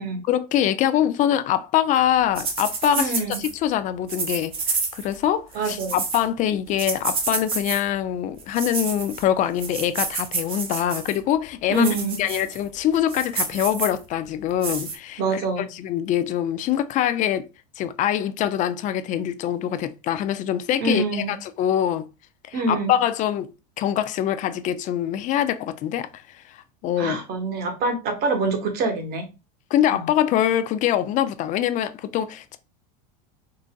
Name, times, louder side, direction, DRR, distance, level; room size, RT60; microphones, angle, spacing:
voice 1, 0.3-15.4 15.7-17.5 17.8-22.1 22.5-23.5 23.8-26.2 26.8-27.2 29.7-32.6, left 11 dB, 40° left, 0.4 m, -24 dB
sound 1, 2.4-3.5 4.1-5.2 5.5-6.2 6.8-7.8 8.4-9.2 9.6-11.2 11.7-12.6 13.0-14.0 14.6-15.0, right 4 dB, 25° right, 0.8 m, -29 dB
voice 2, 3.0-3.4 5.5-6.0 11.7-12.2 15.2-15.7 20.8-21.3 22.5-22.9 27.0-29.3 29.9-30.1, right 2 dB, 50° right, 1.1 m, -25 dB
3.8 x 2.5 x 2.2 m
supercardioid pair, 110°, 21 cm